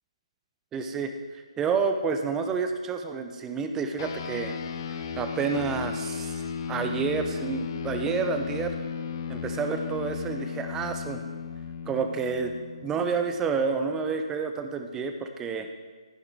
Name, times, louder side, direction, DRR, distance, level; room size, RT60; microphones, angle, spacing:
voice 1, 0.7-4.5 4.9-6.4 6.7-8.7 9.3-11.2 11.9-12.5 12.8-15.7, right 5 dB, 10° right, 6 dB, 0.7 m, -29 dB
sound 1, 4.0-13.7, left 6 dB, 35° left, 0.8 m, -35 dB
14.5 x 10.5 x 3.5 m, 1.5 s
figure-of-eight pair, 145°, 4 cm